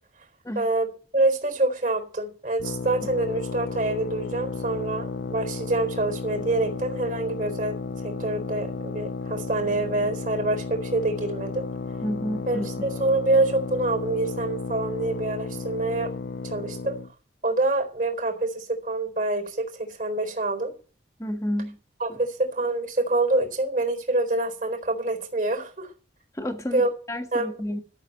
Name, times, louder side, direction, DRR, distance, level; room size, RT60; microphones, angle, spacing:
voice 1, 0.6-12.0 12.5-16.1 16.4-17.0 17.4-20.7 22.0-25.9 26.7-26.9 27.3-27.8, right 2 dB, 45° right, 4.1 m, -26 dB
sound 1, 2.6-17.1, left 3 dB, 70° left, 0.5 m, -33 dB
voice 2, 12.0-12.8 21.2-21.8 22.1-22.2 26.3-27.8, equal, 15° left, 1.6 m, -31 dB
13.5 x 6.9 x 8.3 m
head